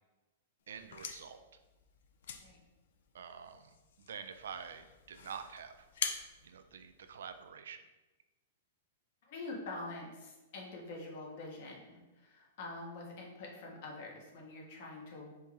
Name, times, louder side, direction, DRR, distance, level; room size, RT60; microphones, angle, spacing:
sound 1, 0.7-7.5, left 7 dB, 60° left, 0.4 m, -45 dB
voice 1, 0.7-1.4 3.1-5.9 6.4-7.9, right 7 dB, 85° right, 9 dB, 0.4 m, -47 dB
voice 2, 9.3-15.4, left 2 dB, 45° left, -2 dB, 1.2 m, -45 dB
4.4 x 3.1 x 3.5 m, 1.1 s
supercardioid pair, 170°, 0 cm